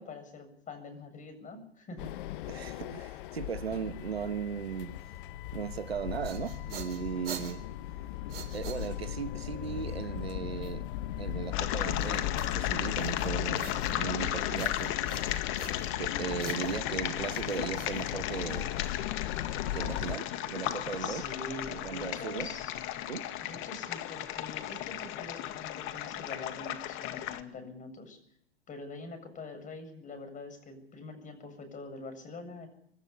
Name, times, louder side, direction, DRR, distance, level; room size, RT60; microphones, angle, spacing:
voice 1, 0.0-2.1 21.0-22.7 23.4-28.2 28.7-32.7, left 3 dB, 25° left, 7.5 m, -44 dB
sound 1, 2.0-20.2, left 13 dB, 60° left, 1.0 m, -37 dB
voice 2, 2.5-4.9 5.5-7.7 8.5-10.9 11.2-15.2 15.8-18.7 19.7-21.3 21.7-22.5 23.1-23.3, right 7 dB, 85° right, 1.3 m, -37 dB
sound 2, 5.9-9.3 12.4-14.2 14.5-16.1 16.4-18.6, right 7 dB, 65° right, 4.1 m, -47 dB
sound 3, 11.5-27.4, left 13 dB, 40° left, 2.0 m, -35 dB
26.0 x 13.0 x 9.9 m
figure-of-eight pair, 95°, 30 cm